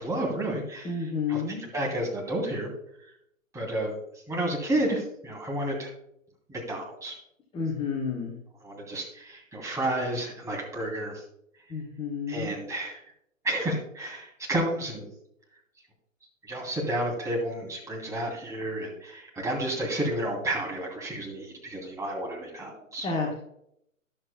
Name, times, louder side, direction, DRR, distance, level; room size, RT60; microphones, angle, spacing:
voice 1, 0.0-0.9 1.3-2.7 3.5-3.9 4.3-5.9 6.5-7.1 8.6-11.2 12.3-13.0 13.4-15.1 16.4-23.1, right 1 dB, 5° right, -2 dB, 2.7 m, -31 dB
voice 2, 0.8-1.6 7.5-8.3 11.7-12.6 23.0-23.3, left 5 dB, 15° left, 0 dB, 1.2 m, -30 dB
13.5 x 11.0 x 2.2 m, 0.72 s
figure-of-eight pair, 120°, 41 cm